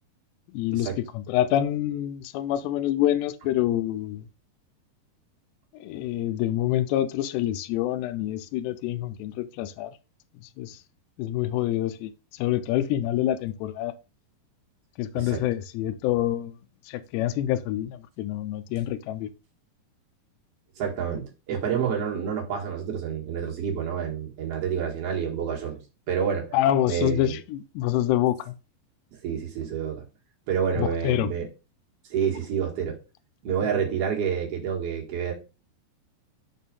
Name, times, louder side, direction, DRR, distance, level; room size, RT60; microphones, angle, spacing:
voice 1, 0.5-4.3 5.8-9.9 10.6-10.8 11.2-13.9 15.0-16.6 16.9-19.3 26.5-28.5 30.8-31.3, left 12 dB, 85° left, 2.7 m, -26 dB
voice 2, 20.8-25.8 26.1-26.5 26.9-27.3 29.2-30.0 30.5-31.5 32.1-33.0 33.4-35.3, right 7 dB, 50° right, 2.1 m, -28 dB
6.4 x 4.3 x 5.2 m
omnidirectional pair, 4.9 m